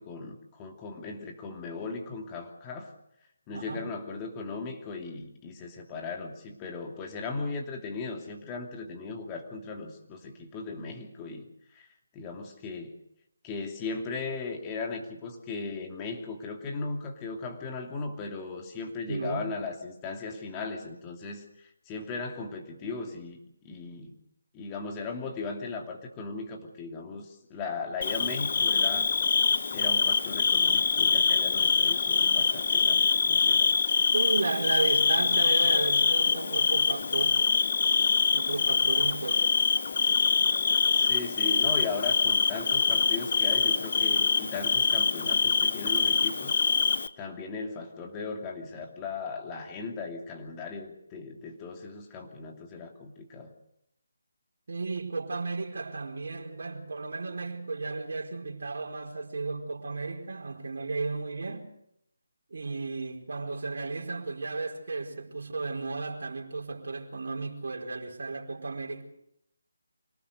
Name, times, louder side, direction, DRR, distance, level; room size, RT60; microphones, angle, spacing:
voice 1, 0.0-2.9 3.5-11.5 11.7-11.9 12.1-13.0 13.4-21.4 21.9-23.4 23.6-24.1 24.5-29.1 29.7-33.7 41.0-46.5 47.2-53.5, left 4 dB, 20° left, 2.9 m, -37 dB
voice 2, 3.5-3.9 19.1-19.5 34.1-37.4 38.3-39.4 54.7-61.7 62.5-69.0, right 3 dB, 60° right, 4.6 m, -34 dB
Bird / Cricket, 28.0-47.1, left 5 dB, 50° left, 1.0 m, -24 dB
25.5 x 19.0 x 6.6 m
figure-of-eight pair, 155°, 0 cm